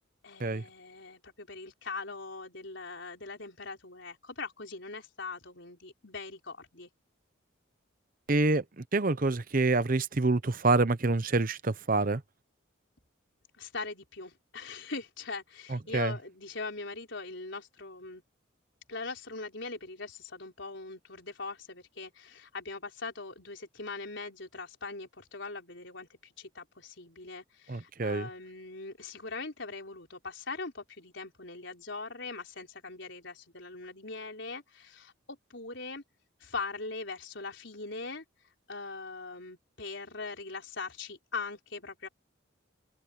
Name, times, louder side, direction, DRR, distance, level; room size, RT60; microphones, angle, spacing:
voice 1, 0.2-6.9 13.6-18.2 18.9-36.0 36.4-38.2 38.7-42.1, left 3 dB, 65° left, 4.8 m, -41 dB
voice 2, 8.3-12.2 15.7-16.1 27.7-28.3, right 3 dB, 45° right, 0.8 m, -27 dB
head